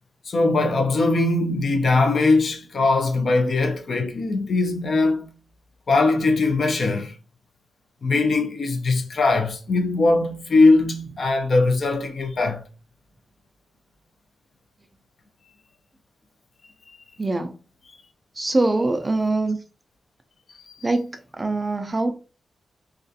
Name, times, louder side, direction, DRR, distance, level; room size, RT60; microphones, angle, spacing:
voice 1, 0.3-5.3 5.9-7.1 8.0-12.6 16.9-17.0 20.7-20.8, left 3 dB, 50° left, 0.5 m, -20 dB
voice 2, 17.2-17.5 18.4-19.6 20.8-22.1, right 2 dB, 20° right, 0.3 m, -23 dB
2.3 x 2.3 x 2.6 m
wide cardioid pair, 140°, 0 cm